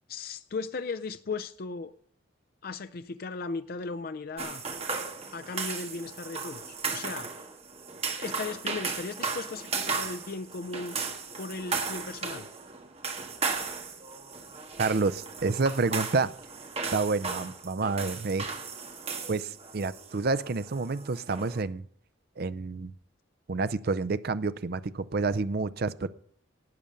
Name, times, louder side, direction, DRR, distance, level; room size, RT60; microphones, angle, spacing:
voice 1, 0.1-1.9 2.6-4.7 5.3-7.3 8.2-11.0 11.4-12.5, left 4 dB, 50° left, 11 dB, 0.5 m, -37 dB
sound 1, 4.4-21.6, right 4 dB, 30° right, 1.7 m, -36 dB
voice 2, 14.8-16.3 16.9-18.5 19.3-21.9 22.4-22.9 23.5-26.1, right 3 dB, 50° right, 14 dB, 0.5 m, -29 dB
12.5 x 8.7 x 6.5 m, 0.63 s
head